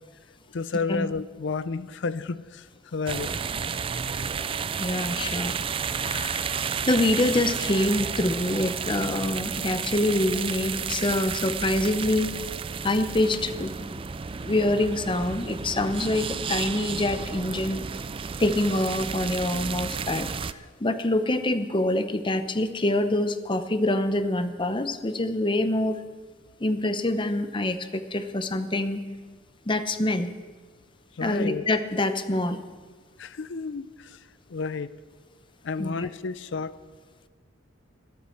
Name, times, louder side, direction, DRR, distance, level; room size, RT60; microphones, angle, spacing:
voice 1, 0.5-3.3 31.1-31.6 33.2-34.2 34.5-34.9 35.6-36.7, left 4 dB, 60° left, 15 dB, 0.5 m, -31 dB
sound 1, 3.1-20.5, right 6 dB, 25° right, 0.4 m, -32 dB
voice 2, 4.8-5.6 5.9-6.6 6.9-12.3 12.8-14.0 14.4-17.8 18.4-26.0 26.6-29.0 29.7-30.3 31.2-32.6 35.8-36.1, left 1 dB, 25° left, 10 dB, 0.8 m, -26 dB
12.5 x 12.5 x 6.4 m, 1.4 s
head